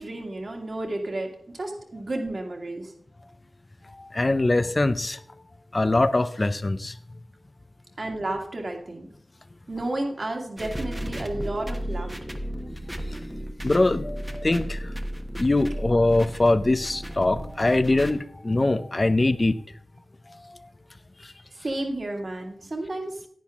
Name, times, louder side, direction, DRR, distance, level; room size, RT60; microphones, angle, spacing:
voice 1, 0.0-2.9 8.0-9.1 9.7-12.4 21.5-23.3, right 1 dB, 40° right, 2 dB, 2.1 m, -32 dB
voice 2, 4.0-5.2 5.7-7.0 13.6-14.9 15.4-19.6, left 2 dB, 25° left, 14 dB, 0.6 m, -22 dB
sound 1, 10.6-18.1, equal, 5° right, 1.1 m, -34 dB
10.0 x 10.0 x 3.6 m, 0.64 s
wide cardioid pair, 115°, 0 cm